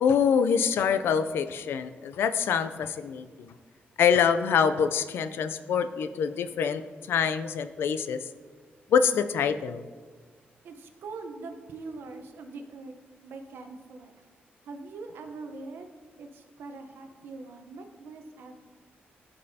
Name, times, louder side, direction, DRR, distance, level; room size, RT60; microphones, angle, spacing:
voice 1, 0.0-3.5 4.0-6.8 7.1-8.2 8.9-9.8, left 7 dB, 80° left, 12 dB, 0.4 m, -25 dB
voice 2, 10.6-12.9 13.2-14.2 14.6-15.9 16.2-18.6, right 3 dB, 75° right, 5 dB, 0.9 m, -42 dB
15.0 x 5.3 x 2.8 m, 1.5 s
wide cardioid pair, 170°, 4 cm